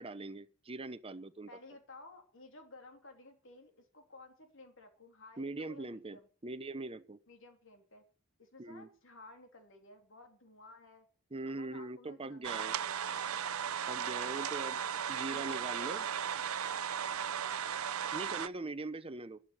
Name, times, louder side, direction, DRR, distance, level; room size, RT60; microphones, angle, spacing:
voice 1, 0.0-1.5 5.4-7.2 8.6-8.9 11.3-12.7 13.9-14.8 15.1-16.1 18.1-19.4, right 2 dB, 25° right, 0.9 m, -42 dB
voice 2, 1.5-6.3 7.3-8.0 8.4-11.1 11.4-13.3 14.3-15.9, left 2 dB, 65° left, 3.1 m, -55 dB
sound 1, 12.4-18.5, right 8 dB, 90° right, 0.7 m, -36 dB
12.0 x 11.5 x 6.5 m
head